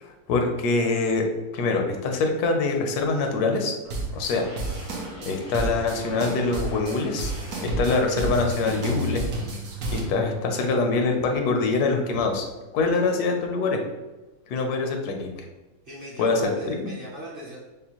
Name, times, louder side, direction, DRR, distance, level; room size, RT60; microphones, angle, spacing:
voice 1, 0.0-1.2 1.5-3.7 4.1-4.4 5.2-7.3 7.6-9.3 9.9-12.4 12.7-13.8 14.5-15.3 16.2-16.8, left 3 dB, 90° left, 3 dB, 1.2 m, -24 dB
sound 1, 3.9-10.0, right 2 dB, 75° right, 1.2 m, -31 dB
sound 2, 4.3-9.5, left 2 dB, 60° left, 0.5 m, -45 dB
voice 2, 15.9-17.6, right 1 dB, 50° right, -5 dB, 0.7 m, -39 dB
5.2 x 2.0 x 2.9 m, 1.1 s
omnidirectional pair, 1.6 m